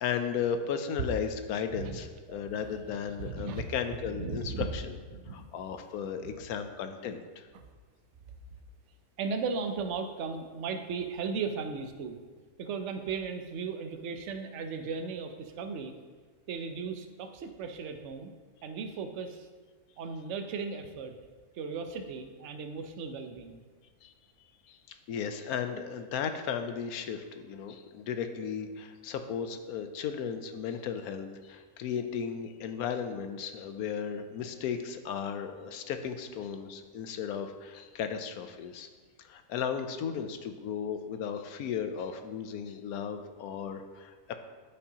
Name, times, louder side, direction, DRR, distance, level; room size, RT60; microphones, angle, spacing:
voice 1, 0.0-5.0 5.3-7.5 24.0-24.1 24.7-38.9 39.2-44.3, left 7 dB, 75° left, 8 dB, 1.1 m, -35 dB
voice 2, 2.3-3.6 4.1-4.7 5.1-5.5 6.2-6.3 7.5-7.6 9.2-12.2 12.6-16.0 16.5-18.3 18.6-19.5 20.0-21.2 21.5-23.6, right 5 dB, 60° right, 6 dB, 0.9 m, -36 dB
12.5 x 5.3 x 2.9 m, 1.4 s
omnidirectional pair, 1.6 m